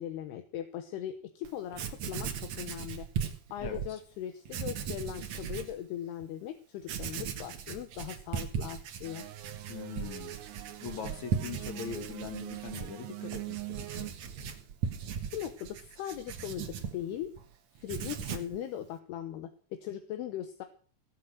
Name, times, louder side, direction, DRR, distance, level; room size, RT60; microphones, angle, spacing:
voice 1, 0.0-2.3 2.6-3.1 3.5-9.3 15.3-16.7 16.9-17.3 17.8-20.6, left 11 dB, 75° left, 7 dB, 2.9 m, -39 dB
Writing, 1.4-1.5 1.7-3.9 4.4-5.7 6.2-6.3 6.8-17.5 17.8-18.6, right 7 dB, 55° right, 2.1 m, -38 dB
voice 2, 3.6-4.0 9.7-10.4 10.8-14.2, left 7 dB, 55° left, 7 dB, 2.4 m, -42 dB
sound 1, 9.0-14.1, right 17 dB, 75° right, 2.4 m, -43 dB
18.0 x 7.9 x 6.5 m, 0.43 s
omnidirectional pair, 4.9 m